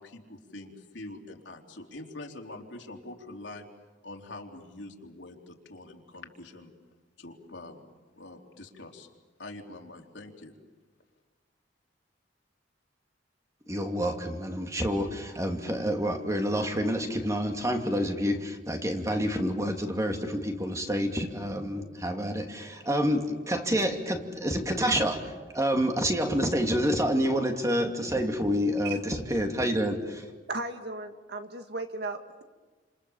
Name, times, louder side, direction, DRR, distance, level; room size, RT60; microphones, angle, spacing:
voice 1, 0.0-3.7 4.0-6.7 7.2-7.8 8.2-9.1 9.4-10.5, left 2 dB, 75° left, 1 dB, 3.6 m, -44 dB
voice 2, 13.7-30.2, equal, 15° right, 3 dB, 2.7 m, -28 dB
voice 3, 30.5-32.4, right 3 dB, 60° right, 6 dB, 2.3 m, -36 dB
30.0 x 27.5 x 7.3 m, 1.3 s
head